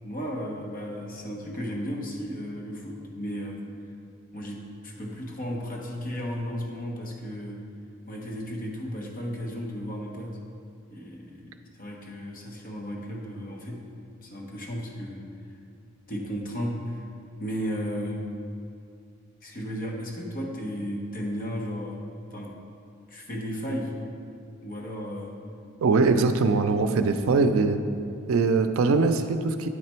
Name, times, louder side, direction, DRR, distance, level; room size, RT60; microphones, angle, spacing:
voice 1, 0.0-3.6 4.3-7.6 8.1-10.4 10.9-13.8 14.2-15.3 16.1-17.1 17.4-18.3 19.4-22.1 22.3-22.5 23.1-24.0 24.6-25.4, equal, 45° left, -1 dB, 1.0 m, -34 dB
voice 2, 25.8-27.8 28.3-29.7, right 4 dB, 80° right, 8 dB, 0.4 m, -22 dB
9.6 x 3.3 x 4.4 m, 2.5 s
head